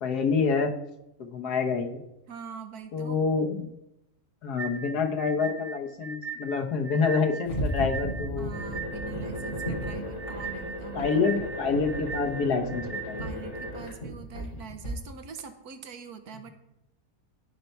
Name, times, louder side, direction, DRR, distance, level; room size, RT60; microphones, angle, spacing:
voice 1, 0.0-0.7 1.2-2.0 2.9-3.7 4.4-8.5 10.9-13.2, left 5 dB, 90° left, 4 dB, 1.7 m, -27 dB
voice 2, 2.3-3.2 8.3-11.3 13.2-16.5, right 6 dB, 80° right, 8 dB, 1.5 m, -43 dB
sound 1, 4.6-13.7, right 5 dB, 45° right, 0.5 m, -39 dB
sound 2, 7.4-14.9, equal, 50° left, 4.6 m, -35 dB
16.5 x 5.4 x 4.5 m, 0.89 s
omnidirectional pair, 1.6 m